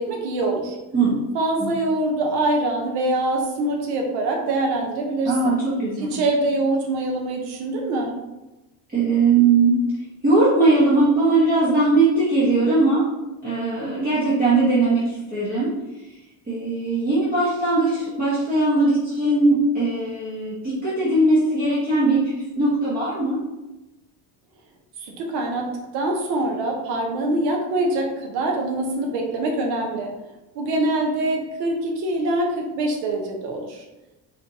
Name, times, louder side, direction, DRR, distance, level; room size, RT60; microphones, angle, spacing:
voice 1, 0.0-0.8 1.3-5.6 6.0-8.1 25.0-30.1 30.5-33.8, right 2 dB, 70° right, 1 dB, 0.9 m, -24 dB
voice 2, 0.9-1.2 1.6-1.7 5.2-6.2 8.9-9.9 10.2-13.1 13.4-15.8 16.5-23.4, right 2 dB, 20° right, -10 dB, 1.1 m, -20 dB
4.9 x 3.1 x 2.8 m, 1.0 s
cardioid pair, 165°, 41 cm